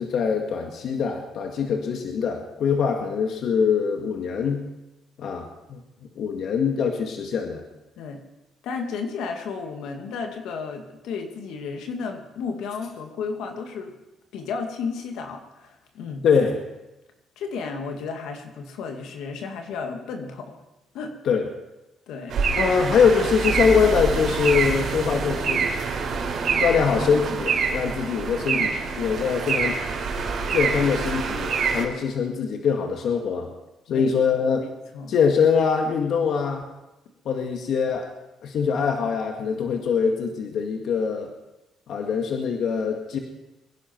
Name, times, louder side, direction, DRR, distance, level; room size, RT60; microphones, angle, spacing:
voice 1, 0.0-4.7 5.2-5.8 6.2-7.6 16.2-16.6 21.3-21.5 22.6-25.7 26.6-29.8 30.5-33.5 33.9-34.7 35.1-36.6 37.3-38.1 38.4-41.3 41.9-43.2, left 6 dB, 65° left, 3 dB, 1.9 m, -23 dB
voice 2, 8.6-13.9 14.3-16.3 17.4-20.6 20.9-21.2 22.1-22.4 33.9-34.1 34.5-34.6 34.9-35.1, left 5 dB, 80° left, 3 dB, 2.2 m, -33 dB
sound 1, 22.3-31.8, right 5 dB, 60° right, 3.6 m, -26 dB
23.5 x 11.0 x 4.6 m, 0.98 s
cardioid pair, 100°, 0 cm